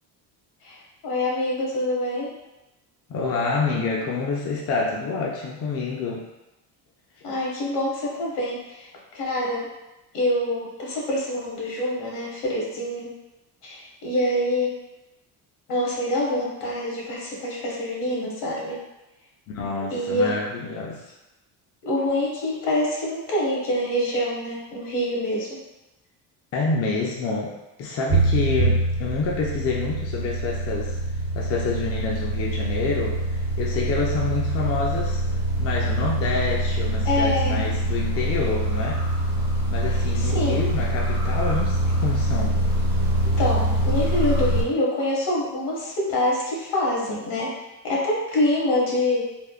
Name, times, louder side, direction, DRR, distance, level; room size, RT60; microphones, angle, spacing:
voice 1, 1.0-2.3 7.2-8.9 9.1-9.7 10.1-13.1 13.6-14.7 15.7-18.8 19.9-20.3 21.8-25.6 37.0-37.7 40.2-40.6 43.2-47.5 47.8-49.2, left 1 dB, 70° left, -4 dB, 1.2 m, -25 dB
voice 2, 3.1-6.2 19.5-21.0 26.5-31.0 31.3-35.2 35.6-39.1 39.7-42.6, left 4 dB, 35° left, -2 dB, 0.4 m, -27 dB
sound 1, 28.1-44.6, right 1 dB, 65° right, 1.0 m, -24 dB
3.5 x 2.1 x 2.3 m, 0.98 s
cardioid pair, 110°, 43 cm